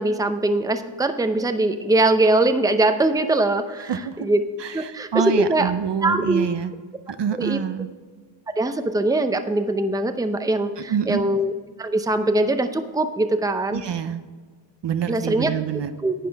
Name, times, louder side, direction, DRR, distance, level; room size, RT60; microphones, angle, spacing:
voice 1, 0.0-3.9 4.2-4.4 4.7-5.1 5.4-5.7 6.0-6.5 7.3-7.6 8.6-11.5 11.8-13.8 15.1-15.5 16.0-16.1, right 2 dB, 10° right, 8 dB, 0.7 m, -21 dB
voice 2, 3.8-4.3 4.6-6.7 7.1-7.9 10.9-11.2 13.7-14.2 14.8-15.9, right 7 dB, 60° right, 10 dB, 0.8 m, -26 dB
11.0 x 8.5 x 3.5 m, 1.5 s
cardioid pair, 75°, 48 cm